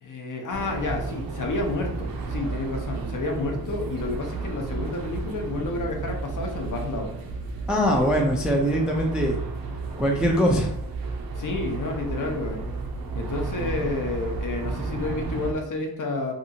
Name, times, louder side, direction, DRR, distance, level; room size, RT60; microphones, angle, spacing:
voice 1, 0.0-7.2 11.4-12.7 13.1-16.3, left 2 dB, 45° left, 2 dB, 0.6 m, -30 dB
sound 1, 0.5-15.5, right 3 dB, 55° right, 0.6 m, -32 dB
voice 2, 7.7-9.4 10.0-10.7, equal, ahead, 0 dB, 0.3 m, -22 dB
2.8 x 2.4 x 2.7 m, 0.74 s
cardioid pair, 75°, 44 cm